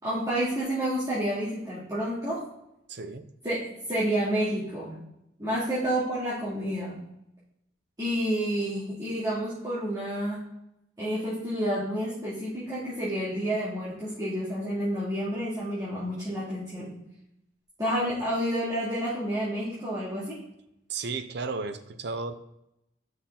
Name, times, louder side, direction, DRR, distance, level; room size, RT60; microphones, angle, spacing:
voice 1, 0.0-2.4 3.4-3.6 3.9-5.0 5.4-7.0 8.0-10.4 11.0-17.0 17.8-20.4, equal, 20° right, -10 dB, 2.6 m, -29 dB
voice 2, 2.9-3.3 20.9-22.3, right 4 dB, 55° right, 10 dB, 0.6 m, -33 dB
6.3 x 6.0 x 3.8 m, 0.82 s
head